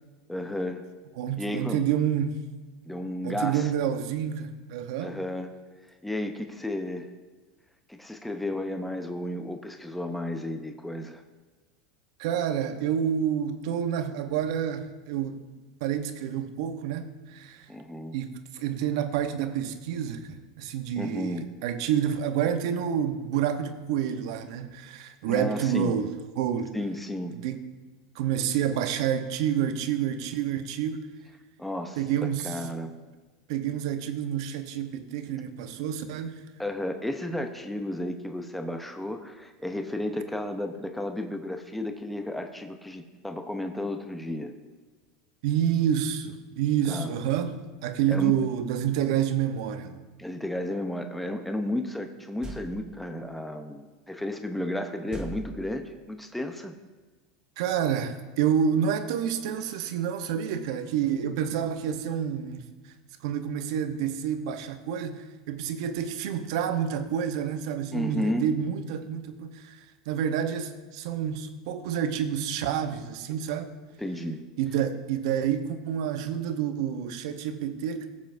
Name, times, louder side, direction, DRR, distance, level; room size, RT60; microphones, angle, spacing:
voice 1, 0.3-0.9 1.4-1.8 2.9-3.7 5.0-5.5 6.0-7.1 7.9-11.2 17.7-18.1 21.0-21.5 25.2-25.9 26.7-27.3 31.6-32.9 36.6-44.5 46.9-47.1 48.1-48.3 50.2-56.7 67.9-68.5 74.0-74.4, left 1 dB, 5° left, 6 dB, 0.7 m, -33 dB
voice 2, 1.2-2.4 3.2-5.2 12.2-15.4 15.8-17.7 18.1-26.8 27.3-27.6 28.1-31.1 32.0-32.7 33.5-36.4 45.4-47.6 47.8-50.0 57.6-62.9 63.2-73.7 74.6-78.1, right 9 dB, 70° right, 8 dB, 0.9 m, -28 dB
sound 1, 52.4-53.1 55.1-56.1, right 1 dB, 25° right, 1.4 m, -41 dB
18.0 x 7.3 x 2.6 m, 1.3 s
supercardioid pair, 110°, 3 cm